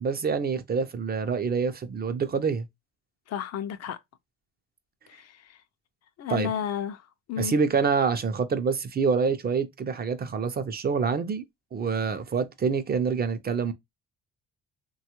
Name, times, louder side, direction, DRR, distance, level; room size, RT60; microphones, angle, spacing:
voice 1, 0.0-2.7 6.3-6.5 7.4-11.4 11.7-13.7, right 5 dB, 30° right, 0.4 m, -26 dB
voice 2, 3.3-4.0 5.1-5.2 6.2-7.0 7.3-7.6, left 9 dB, 60° left, 0.4 m, -31 dB
2.9 x 2.3 x 2.8 m
cardioid pair, 90°, 30 cm